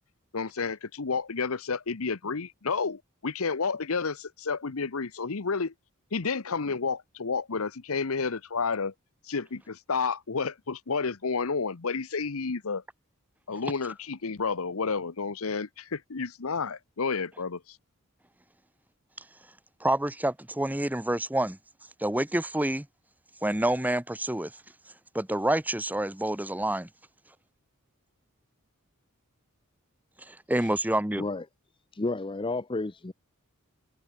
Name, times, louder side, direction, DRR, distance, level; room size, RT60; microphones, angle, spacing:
voice 1, 0.3-5.7 6.1-8.9 9.3-12.8 13.5-17.6, left 4 dB, 70° left, 0.9 m, -30 dB
voice 2, 19.8-21.6 22.0-22.8 23.4-24.5 25.1-26.9 30.3-31.2, right 1 dB, 10° right, 1.0 m, -27 dB
voice 3, 31.9-33.1, left 2 dB, 25° left, 0.6 m, -31 dB
head